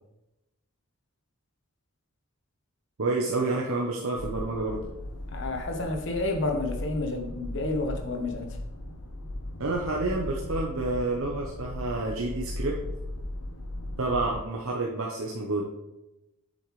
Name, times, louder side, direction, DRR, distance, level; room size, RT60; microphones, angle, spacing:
voice 1, 3.0-4.8 9.6-12.8 14.0-15.6, right 2 dB, 70° right, 0.9 m, -29 dB
sound 1, 4.2-14.4, left 1 dB, 90° left, 0.9 m, -37 dB
voice 2, 5.3-8.6, left 2 dB, 55° left, 1.0 m, -30 dB
7.8 x 7.2 x 3.2 m
head